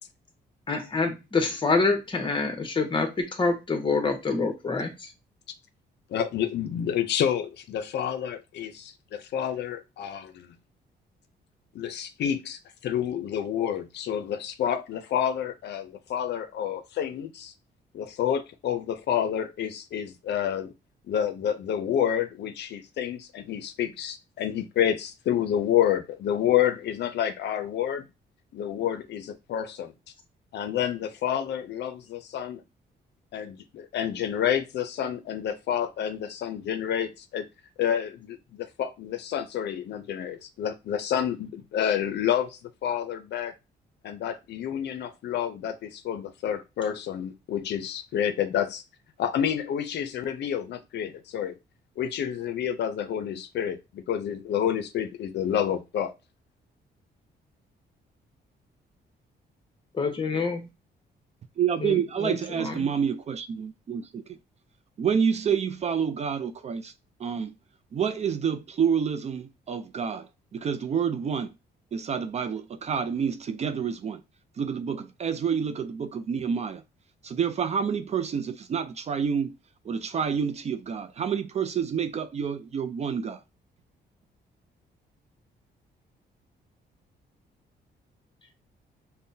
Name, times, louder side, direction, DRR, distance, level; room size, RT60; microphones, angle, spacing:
voice 1, 0.7-5.1 59.9-60.7 61.8-62.9, left 4 dB, 25° left, 1.0 m, -27 dB
voice 2, 6.1-10.5 11.7-17.5 17.9-20.7 21.1-28.1 28.5-29.9 30.5-32.6 33.3-37.4 37.8-43.5 44.0-48.8 49.2-51.6 52.0-56.1, left 9 dB, 70° left, 0.5 m, -29 dB
voice 3, 61.6-64.2 65.0-66.9 67.2-67.5 67.9-71.5 71.9-74.2 74.6-76.8 77.2-79.6 79.8-83.4, right 7 dB, 40° right, 0.4 m, -28 dB
5.3 x 2.1 x 2.6 m
cardioid pair, 120°, 18 cm